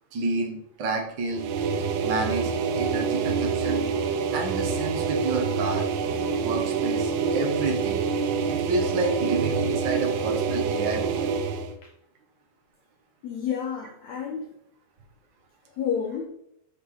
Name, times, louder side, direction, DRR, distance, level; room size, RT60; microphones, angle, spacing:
voice 1, 0.1-1.4 2.0-2.5 2.8-3.9 4.3-5.8 6.4-8.0 8.5-11.3, right 3 dB, 50° right, 2 dB, 1.3 m, -29 dB
sound 1, 1.3-11.7, right 5 dB, 80° right, 1.7 m, -26 dB
voice 2, 13.2-14.5 15.8-16.3, left 7 dB, 75° left, 1 dB, 1.7 m, -30 dB
7.9 x 5.9 x 5.0 m, 0.74 s
omnidirectional pair, 4.1 m